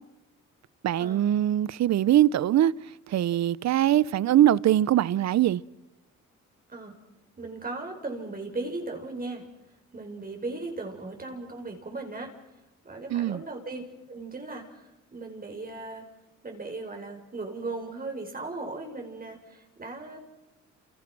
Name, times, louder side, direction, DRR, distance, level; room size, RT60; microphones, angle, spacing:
voice 1, 0.8-2.7 3.1-5.6 13.1-13.4, right 12 dB, 65° right, 0.8 m, -22 dB
voice 2, 7.4-9.4 9.9-12.3 12.9-13.8 14.1-14.6 15.1-16.0 16.4-20.2, right 3 dB, 30° right, 5.2 m, -37 dB
28.5 x 28.5 x 6.1 m
cardioid pair, 90°, 30 cm